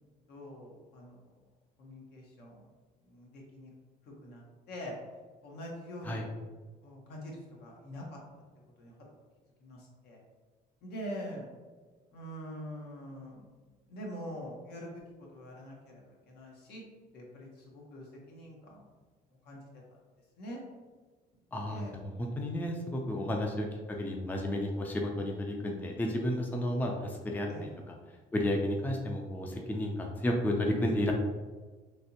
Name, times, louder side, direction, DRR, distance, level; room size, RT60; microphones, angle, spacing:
voice 1, 0.3-1.2 1.8-2.6 3.1-3.7 4.2-4.4 4.7-4.9 5.4-6.2 6.8-8.2 8.8-8.9 9.6-9.8 10.0-10.2 10.8-11.4 12.1-13.5 13.9-15.0 15.3-16.8 17.1-17.5 17.7-18.8 19.5-19.6 20.4-20.6 21.7-21.9 23.1-23.3 27.5-27.8, equal, 75° left, -2 dB, 1.0 m, -44 dB
voice 2, 21.5-28.0 28.3-31.1, left 1 dB, 10° left, 1 dB, 0.4 m, -32 dB
3.3 x 2.8 x 2.8 m, 1.4 s
cardioid pair, 110°, 17 cm